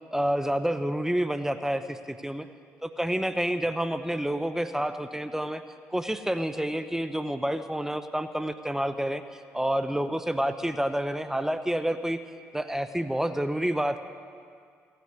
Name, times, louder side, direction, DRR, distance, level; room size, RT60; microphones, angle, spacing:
voice 1, 0.1-2.5 2.8-5.6 5.9-12.2 12.5-14.0, right 1 dB, 5° right, 10 dB, 0.8 m, -29 dB
16.5 x 8.0 x 9.6 m, 2.1 s
hypercardioid pair, 50°, 7 cm